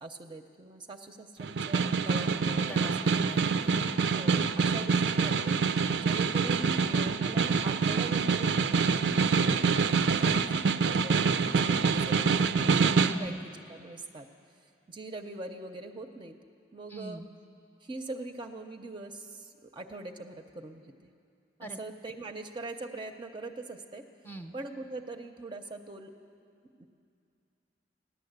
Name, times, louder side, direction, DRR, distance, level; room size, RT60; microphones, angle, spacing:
voice 1, 0.0-3.2 4.0-5.6 6.0-9.0 9.4-13.4 13.7-14.3 14.9-16.4 16.7-17.2 17.8-21.1 21.6-24.0 24.5-26.1 26.8-26.9, right 2 dB, 25° right, 4 dB, 0.6 m, -42 dB
Snare drum, 1.4-13.2, right 5 dB, 85° right, 0.5 m, -26 dB
voice 2, 2.6-3.9 13.1-13.4 16.9-17.3 21.6-21.8 24.2-24.5, right 1 dB, 10° left, 4 dB, 0.8 m, -42 dB
15.5 x 11.0 x 8.0 m, 2.5 s
head